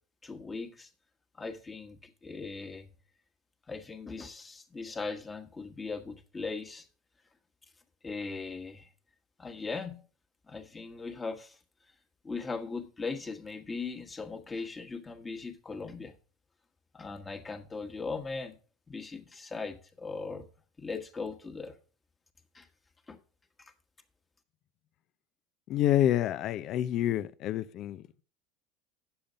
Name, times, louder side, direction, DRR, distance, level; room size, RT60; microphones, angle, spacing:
voice 1, 0.2-0.9 1.3-2.9 3.7-6.9 8.0-8.9 9.4-10.0 10.5-11.6 12.2-16.2 16.9-18.6 18.9-20.5 20.8-21.8 22.5-22.7 23.1-23.2, left 4 dB, 20° left, 1.4 m, -39 dB
voice 2, 25.7-28.2, left 12 dB, 55° left, 0.6 m, -28 dB
8.8 x 7.1 x 5.2 m
supercardioid pair, 100°, 0 cm